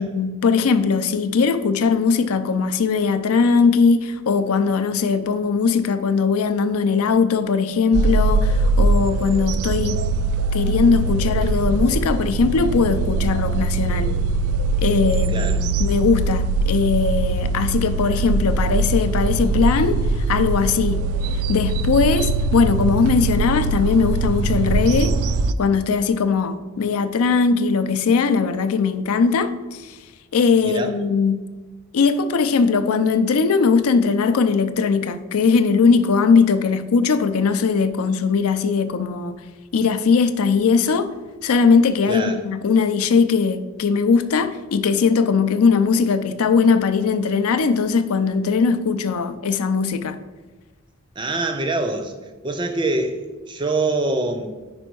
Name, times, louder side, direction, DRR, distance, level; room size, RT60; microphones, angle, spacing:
voice 1, 0.0-10.0 10.5-14.1 14.8-21.0 21.5-25.1 25.6-30.0 30.3-31.4 31.9-39.3 39.7-41.1 41.4-50.2, left 5 dB, 80° left, 0.4 m, -19 dB
sound 1, 7.9-25.5, right 3 dB, 80° right, 0.3 m, -21 dB
voice 2, 15.3-15.6 30.6-30.9 42.1-42.4 51.2-52.1 52.4-54.7, right 2 dB, 20° right, 0.5 m, -24 dB
5.2 x 4.4 x 4.5 m
head